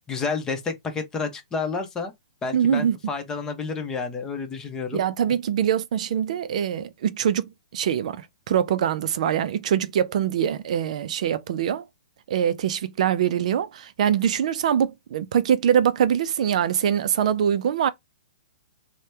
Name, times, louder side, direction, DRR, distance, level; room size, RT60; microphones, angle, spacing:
voice 1, 0.1-2.1 2.4-5.0, left 4 dB, 15° left, 0.7 m, -30 dB
voice 2, 2.5-3.0 4.9-11.9 12.3-17.9, right 9 dB, 60° right, 0.3 m, -23 dB
2.8 x 2.1 x 3.3 m
hypercardioid pair, 140°, 4 cm